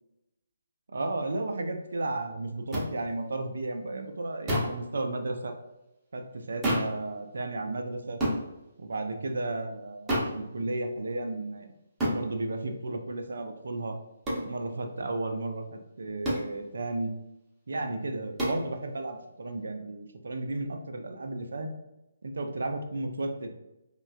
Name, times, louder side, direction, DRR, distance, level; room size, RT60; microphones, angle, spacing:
voice 1, 0.9-5.5 6.1-8.2 8.8-11.7 12.1-14.0 14.5-17.1 17.7-21.7 22.2-23.5, right 2 dB, 60° right, 5 dB, 0.4 m, -33 dB
sound 1, 2.7-2.9 4.5-4.8 6.6-7.0 8.2-8.4 10.1-10.4 12.0-12.2 14.3-14.5 16.2-16.5 18.4-18.6, equal, 10° right, 0.7 m, -28 dB
3.1 x 2.2 x 2.5 m, 0.95 s
figure-of-eight pair, 140°, 0 cm